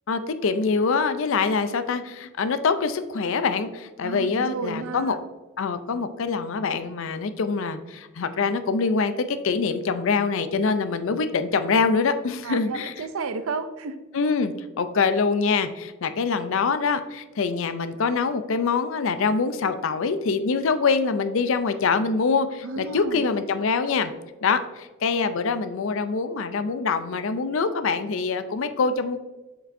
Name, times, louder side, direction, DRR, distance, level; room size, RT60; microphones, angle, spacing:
voice 1, 0.1-5.2 5.6-12.9 14.1-24.1 24.4-29.2, left 4 dB, 60° left, 10 dB, 0.4 m, -24 dB
voice 2, 4.0-5.2 12.4-14.0 22.6-23.2, right 4 dB, 75° right, 10 dB, 0.5 m, -32 dB
7.6 x 5.0 x 2.6 m, 1.2 s
head